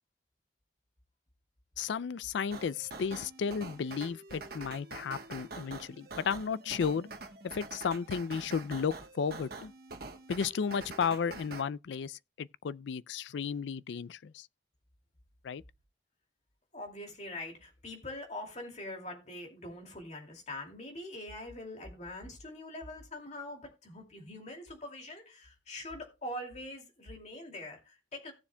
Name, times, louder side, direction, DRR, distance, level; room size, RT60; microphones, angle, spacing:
voice 1, 1.8-7.1 7.4-9.7 10.3-14.5 15.4-15.6, left 6 dB, 75° left, 0.4 m, -34 dB
sound 1, 2.5-11.6, right 3 dB, 55° right, 1.2 m, -46 dB
voice 2, 16.7-28.3, left 1 dB, 40° left, 2.4 m, -43 dB
16.5 x 7.0 x 2.2 m
head